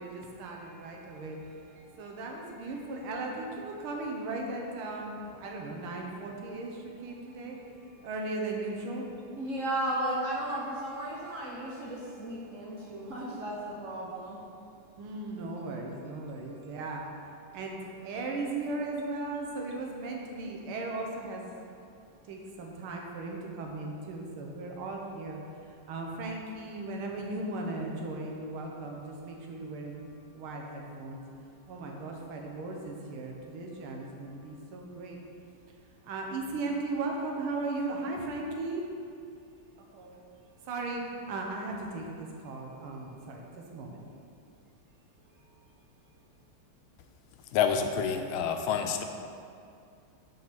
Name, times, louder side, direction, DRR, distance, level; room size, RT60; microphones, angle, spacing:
voice 1, 0.0-9.4 11.6-11.7 12.5-13.2 14.9-21.7 22.2-25.4 25.9-31.2 31.7-35.2 36.0-38.8 39.8-40.3 40.6-44.0, right 2 dB, 85° right, 0 dB, 1.8 m, -37 dB
voice 2, 9.4-14.4, right 1 dB, 55° right, -4 dB, 0.9 m, -34 dB
voice 3, 47.5-49.0, left 7 dB, 80° left, 6 dB, 1.4 m, -28 dB
5.5 x 5.2 x 5.8 m, 2.4 s
omnidirectional pair, 2.3 m